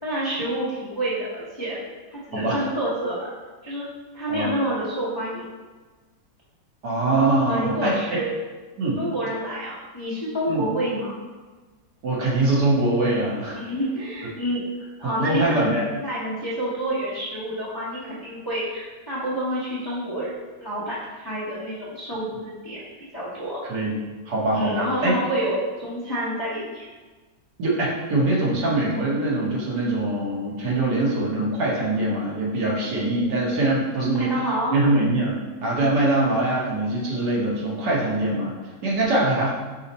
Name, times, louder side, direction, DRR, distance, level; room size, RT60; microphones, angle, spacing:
voice 1, 0.0-1.8 2.1-3.2 3.6-3.9 4.1-5.5 7.5-8.3 9.0-11.1 13.5-14.6 15.0-20.3 20.6-22.8 23.1-23.6 24.5-26.8 34.0-34.8, right 1 dB, 20° left, -9 dB, 0.6 m, -28 dB
voice 2, 2.3-2.6 4.3-4.5 6.8-8.0 8.8-9.0 10.5-10.7 12.0-13.6 15.2-15.9 23.7-24.0 24.3-25.1 27.6-34.3 34.7-38.5 38.8-39.5, right 2 dB, 70° right, -4 dB, 1.6 m, -23 dB
5.4 x 2.1 x 4.0 m, 1.3 s
omnidirectional pair, 2.0 m